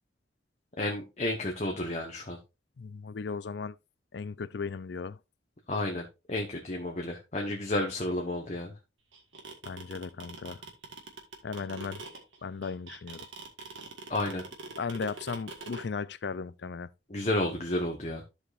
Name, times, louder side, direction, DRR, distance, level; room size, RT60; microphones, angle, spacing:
voice 1, 0.8-2.4 5.7-8.7 14.1-14.4 17.1-18.2, left 1 dB, 35° left, 1.1 m, -31 dB
voice 2, 2.8-3.8 4.1-5.2 9.6-10.6 11.4-12.0 12.4-13.2 14.8-16.9, left 5 dB, 60° left, 0.4 m, -36 dB
sound 1, 9.1-15.8, right 3 dB, 80° right, 1.7 m, -43 dB
14.0 x 5.0 x 2.5 m
head